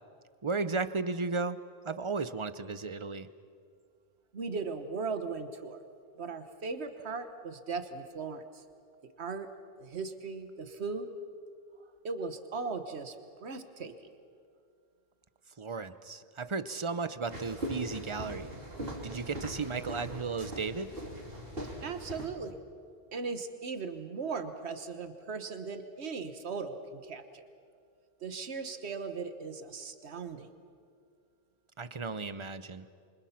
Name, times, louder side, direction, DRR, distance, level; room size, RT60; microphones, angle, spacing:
voice 1, 0.4-1.6 1.8-3.3 15.6-18.5 19.0-20.9 31.8-32.9, right 4 dB, 30° right, 13 dB, 0.8 m, -34 dB
voice 2, 4.3-5.8 6.2-8.4 9.2-9.5 9.8-11.1 12.0-13.1 13.4-13.9 21.8-22.5 23.1-27.4 28.2-30.5, right 4 dB, 85° right, 9 dB, 1.5 m, -38 dB
sound 1, 17.3-22.3, right 1 dB, 60° right, 3.2 m, -40 dB
28.0 x 25.0 x 5.9 m, 2.2 s
omnidirectional pair, 1.1 m